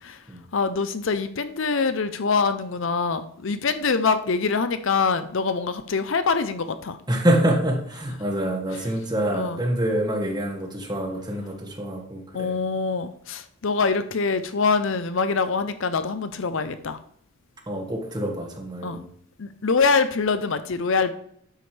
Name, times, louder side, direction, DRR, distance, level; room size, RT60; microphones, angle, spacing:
voice 1, 0.5-7.0 9.3-9.6 12.3-17.0 18.8-19.0 19.4-21.1, left 4 dB, 55° left, 0.6 m, -24 dB
voice 2, 7.1-12.5 17.7-19.1, right 1 dB, 20° right, 1.7 m, -26 dB
12.5 x 9.5 x 3.3 m
head